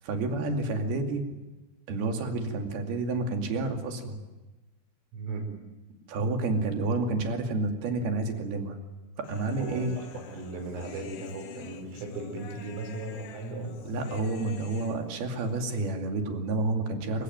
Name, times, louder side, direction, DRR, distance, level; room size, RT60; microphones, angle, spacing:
voice 1, 0.0-1.2 1.9-4.2 6.1-8.8 9.2-9.9 13.9-17.2, right 3 dB, 55° right, 4 dB, 4.0 m, -29 dB
voice 2, 5.1-5.5 9.6-14.0, right 2 dB, 70° right, 3 dB, 7.8 m, -37 dB
Human voice, 9.2-15.7, left 8 dB, 65° left, 3.4 m, -48 dB
27.5 x 17.0 x 9.5 m, 1.1 s
omnidirectional pair, 6.0 m